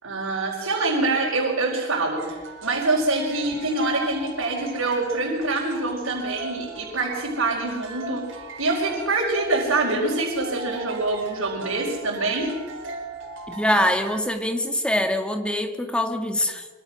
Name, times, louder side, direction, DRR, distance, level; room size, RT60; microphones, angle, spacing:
voice 1, 0.0-2.4 2.6-12.5, right 2 dB, 85° right, -3 dB, 4.9 m, -25 dB
sound 1, 2.2-14.2, right 3 dB, 70° right, 5.4 m, -39 dB
voice 2, 13.5-16.7, left 1 dB, 5° left, 5 dB, 1.9 m, -24 dB
25.5 x 24.5 x 6.3 m, 1.4 s
head